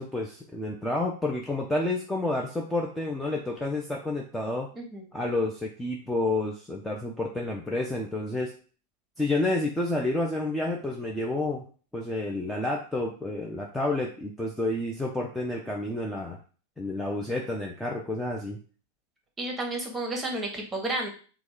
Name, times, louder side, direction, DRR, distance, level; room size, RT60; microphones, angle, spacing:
voice 1, 0.0-4.7 5.1-8.5 9.2-11.6 11.9-16.4 16.8-18.6, left 2 dB, 5° left, -1 dB, 0.5 m, -30 dB
voice 2, 19.4-21.1, right 2 dB, 15° right, 1 dB, 0.9 m, -31 dB
2.9 x 2.3 x 3.7 m, 0.39 s
figure-of-eight pair, 90°, 0 cm